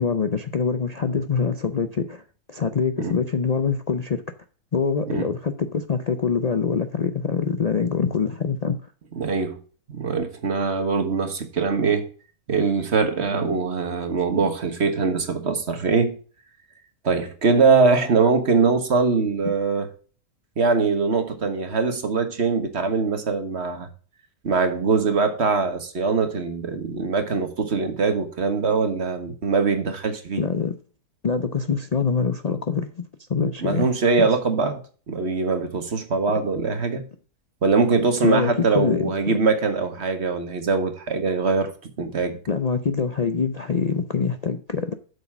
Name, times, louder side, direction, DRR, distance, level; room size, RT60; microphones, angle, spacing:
voice 1, 0.0-2.2 2.5-4.2 4.7-8.8 30.4-30.7 31.2-32.9 33.3-33.9 38.2-39.1 42.5-44.9, left 5 dB, 70° left, 0.3 m, -24 dB
voice 2, 9.1-9.6 9.9-12.1 12.5-16.2 17.0-19.9 20.6-23.9 24.4-30.4 33.6-34.8 35.1-37.0 37.6-41.7 42.0-42.4, right 4 dB, 45° right, 1.6 m, -22 dB
8.1 x 6.6 x 5.9 m
omnidirectional pair, 1.6 m